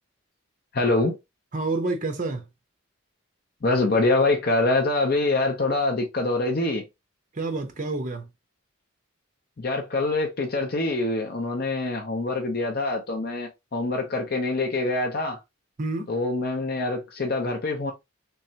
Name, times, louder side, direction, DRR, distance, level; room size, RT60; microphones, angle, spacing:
voice 1, 0.7-1.2 3.6-6.8 9.6-15.4 16.1-17.9, left 2 dB, 50° left, 0.6 m, -25 dB
voice 2, 1.5-2.4 7.4-8.3 15.8-16.1, right 3 dB, 40° right, 0.7 m, -28 dB
3.4 x 3.2 x 2.7 m
head